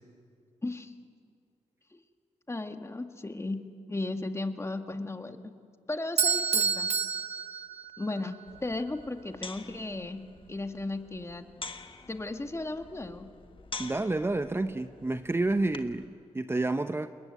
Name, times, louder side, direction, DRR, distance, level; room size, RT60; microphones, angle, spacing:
voice 1, 0.6-0.9 1.9-2.0 2.5-3.6 3.9-5.4 5.9-6.9 8.0-10.2 10.5-11.5 12.1-13.3, left 2 dB, 20° left, 7 dB, 1.8 m, -35 dB
Bell / Doorbell, 6.2-8.3, right 6 dB, 55° right, 1.2 m, -28 dB
sound 1, 8.5-16.1, left 4 dB, 45° left, 1.6 m, -47 dB
voice 2, 13.8-17.1, right 2 dB, 20° right, 10 dB, 0.8 m, -29 dB
29.0 x 21.0 x 9.3 m, 2.3 s
cardioid pair, 70°, 12 cm